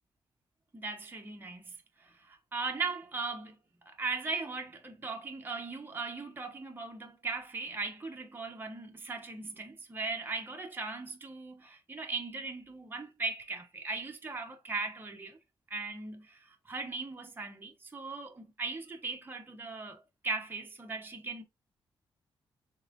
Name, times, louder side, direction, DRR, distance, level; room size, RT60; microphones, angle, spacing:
voice 1, 0.7-3.6 3.8-15.4 15.7-21.4, right 3 dB, 20° right, 1.0 m, -38 dB
5.6 x 3.6 x 2.5 m
wide cardioid pair, 135°, 9 cm